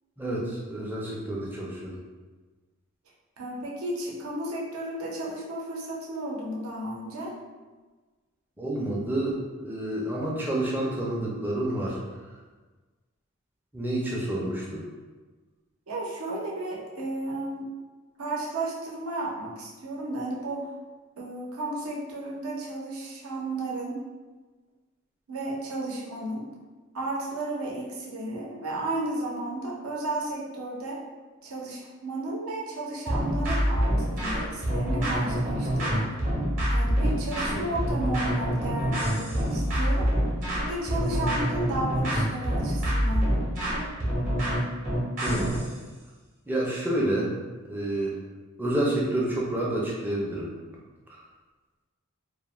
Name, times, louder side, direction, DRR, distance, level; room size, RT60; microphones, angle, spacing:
voice 1, 0.2-2.0 8.6-12.0 13.7-14.8 37.5-37.7 45.2-45.6 46.5-47.3 47.7-48.1 48.6-50.5, right 1 dB, 10° right, -5 dB, 0.4 m, -29 dB
voice 2, 3.4-7.3 15.9-17.7 18.2-20.7 21.2-24.0 25.3-26.4 26.9-31.0 31.4-36.1 36.7-40.1 40.6-43.4, right 2 dB, 75° right, -4 dB, 0.6 m, -33 dB
sound 1, 33.1-45.7, equal, 40° right, 0.8 m, -26 dB
2.3 x 2.1 x 3.0 m, 1.3 s
head